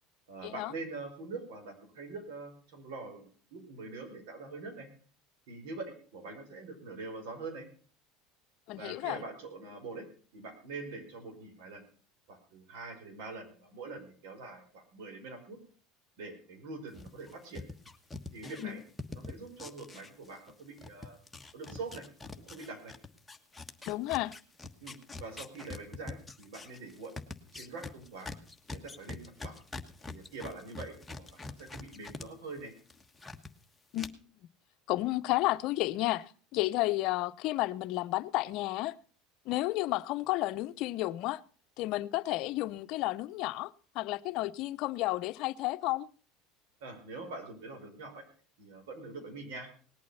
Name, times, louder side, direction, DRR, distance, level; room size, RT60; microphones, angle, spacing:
voice 1, 0.3-4.9 5.5-7.7 8.8-10.1 10.3-11.8 12.3-15.6 16.2-17.6 18.3-18.8 19.1-21.2 21.5-22.1 22.4-22.9 24.8-27.1 27.5-28.3 28.7-29.5 30.1-32.7 46.8-48.2 48.6-49.7, right 3 dB, 75° right, 5.2 m, -44 dB
voice 2, 8.7-9.2 18.6-18.8 23.9-24.3 33.9-34.3 34.9-39.0 39.5-41.4 41.8-46.1, left 18 dB, 60° left, 0.7 m, -32 dB
sound 1, 16.9-20.5 20.8-32.3 32.6-33.5 33.9-34.1, left 3 dB, 10° left, 1.4 m, -44 dB
19.0 x 8.6 x 5.6 m
supercardioid pair, 110°, 0 cm